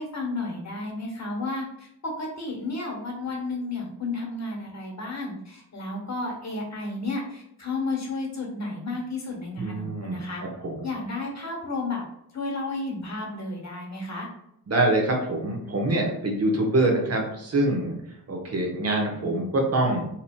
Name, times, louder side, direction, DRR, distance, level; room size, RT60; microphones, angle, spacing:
voice 1, 0.0-10.4 10.8-12.0 12.3-14.3, left 2 dB, 40° left, -1 dB, 1.1 m, -32 dB
voice 2, 9.6-10.2 10.6-10.9 14.7-20.0, right 2 dB, 40° right, 0 dB, 0.9 m, -25 dB
2.8 x 2.7 x 2.2 m, 0.78 s
cardioid pair, 45°, 40 cm